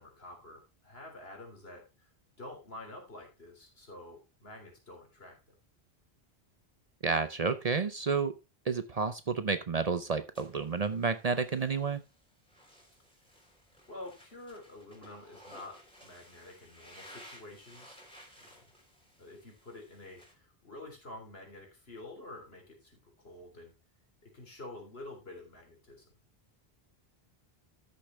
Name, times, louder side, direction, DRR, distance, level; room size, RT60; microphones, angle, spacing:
voice 1, 0.0-2.1 2.4-5.4 13.9-18.0 18.4-18.6 19.2-23.7 24.2-26.0, left 2 dB, 75° left, 1 dB, 3.8 m, -48 dB
voice 2, 7.0-8.4 8.7-12.0, right 4 dB, 45° right, 11 dB, 0.7 m, -30 dB
sound 1, 10.4-20.3, equal, 5° left, 3.4 m, -56 dB
13.0 x 6.8 x 3.2 m, 0.26 s
omnidirectional pair, 1.0 m